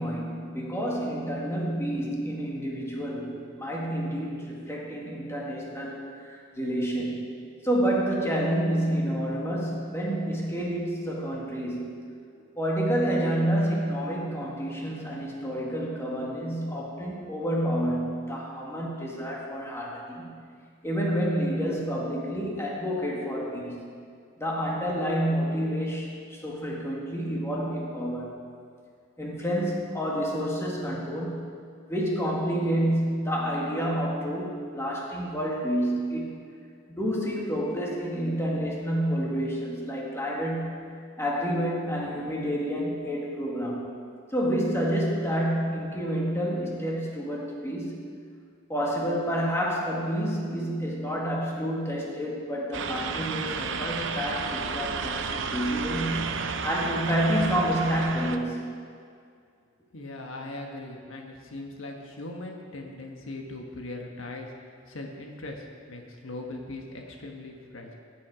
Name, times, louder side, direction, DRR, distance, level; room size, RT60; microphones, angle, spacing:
voice 1, 0.0-7.3 7.6-12.0 12.6-20.4 20.8-23.8 24.4-28.4 29.2-31.5 31.9-36.3 36.9-40.8 41.2-43.9 44.3-48.1 48.7-58.6, equal, 15° left, -3 dB, 2.0 m, -29 dB
sound 1, 52.7-58.4, right 5 dB, 60° right, 0.7 m, -32 dB
voice 2, 59.9-64.5 64.9-67.9, left 2 dB, 75° left, 1 dB, 1.4 m, -39 dB
16.5 x 9.9 x 5.0 m, 2.2 s
head